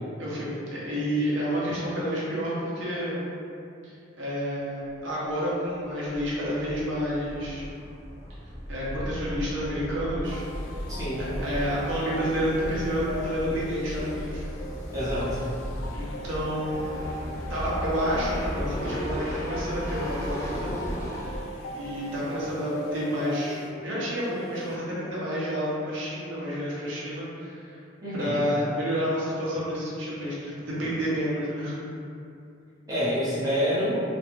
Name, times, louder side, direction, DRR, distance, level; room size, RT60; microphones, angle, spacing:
voice 1, 0.2-3.2 3.8-7.7 8.7-10.4 11.2-14.4 15.9-17.0 17.5-20.7 21.7-23.6 23.8-27.8 28.1-31.8, equal, 75° right, -7 dB, 0.9 m, -29 dB
sound 1, 4.8-5.0 5.2-5.3 5.7-21.4, equal, 15° left, 0.4 m, -35 dB
sound 2, 10.2-24.8, left 2 dB, 90° left, 0.3 m, -40 dB
voice 2, 10.9-11.3 14.9-15.4 28.0-28.4 32.9-34.0, equal, 20° right, -11 dB, 1.0 m, -27 dB
3.1 x 2.3 x 3.0 m, 2.5 s
head